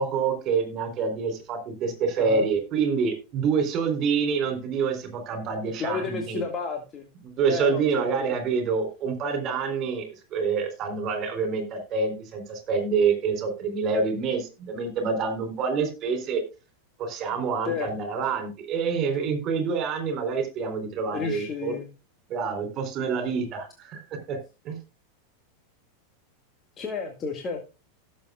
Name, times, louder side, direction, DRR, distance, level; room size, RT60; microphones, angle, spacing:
voice 1, 0.0-6.4 7.2-16.4 17.0-21.8 22.3-24.4 24.6-24.8, right 5 dB, 35° right, 7 dB, 4.0 m, -27 dB
voice 2, 5.8-7.1 7.5-8.6 17.6-17.9 19.2-19.3 21.1-21.9 26.8-27.6, left 5 dB, 25° left, 3 dB, 2.0 m, -32 dB
17.0 x 7.4 x 2.4 m, 0.30 s
figure-of-eight pair, 90°, 0 cm